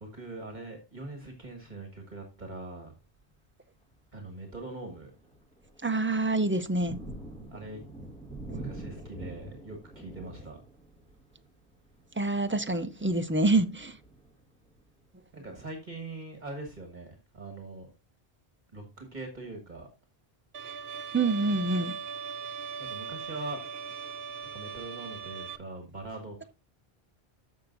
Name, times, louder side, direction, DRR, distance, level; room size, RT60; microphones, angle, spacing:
voice 1, 0.0-2.9 4.1-5.1 7.5-7.8 8.5-10.6 15.3-17.9 18.7-19.9 22.8-23.6 24.5-26.4, right 2 dB, 45° right, 1.7 m, -42 dB
Thunder, 3.0-3.3 3.9-4.0 4.5-15.1, right 1 dB, 5° left, 1.6 m, -46 dB
voice 2, 5.8-7.0 12.2-14.0 21.1-21.9, right 2 dB, 15° right, 0.4 m, -26 dB
Bowed string instrument, 20.5-25.6, right 6 dB, 70° right, 0.9 m, -39 dB
13.5 x 5.9 x 2.6 m
omnidirectional pair, 1.1 m